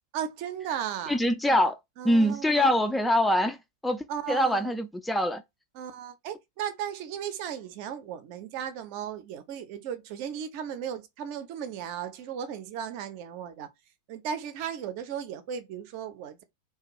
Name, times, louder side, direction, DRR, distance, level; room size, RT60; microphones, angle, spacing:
voice 1, 0.1-1.2 2.0-2.9 4.1-4.7 5.7-13.7 14.1-16.4, right 8 dB, 45° right, 0.5 m, -36 dB
voice 2, 1.1-1.8 2.0-3.6 3.8-5.4, left 1 dB, 5° left, 0.4 m, -24 dB
2.5 x 2.2 x 2.9 m
figure-of-eight pair, 90°, 0 cm